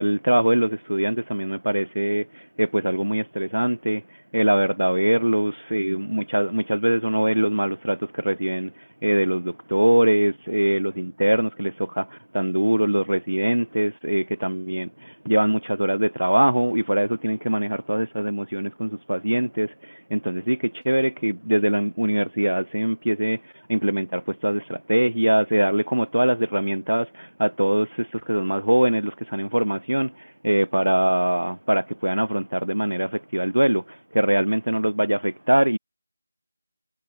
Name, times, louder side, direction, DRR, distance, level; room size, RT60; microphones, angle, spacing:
voice 1, 0.0-4.0 4.3-35.8, right 1 dB, 75° right, 2.7 m, -23 dB
figure-of-eight pair, 165°, 0 cm